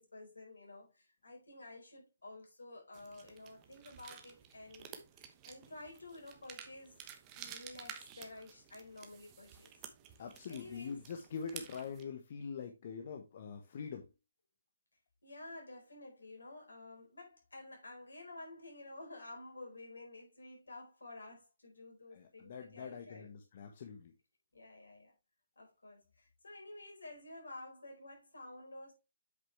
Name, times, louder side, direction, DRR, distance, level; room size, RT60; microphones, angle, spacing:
voice 1, 0.0-4.9 5.1-7.0 7.3-9.7 10.5-11.0 15.2-23.3 24.5-25.1 25.6-28.9, left 2 dB, 75° left, 4.4 m, -51 dB
sound 1, 2.9-12.0, right 9 dB, 25° right, 1.1 m, -53 dB
voice 2, 10.2-14.1 22.1-24.1, left 6 dB, 45° left, 1.1 m, -44 dB
8.1 x 6.1 x 3.3 m
figure-of-eight pair, 140°, 0 cm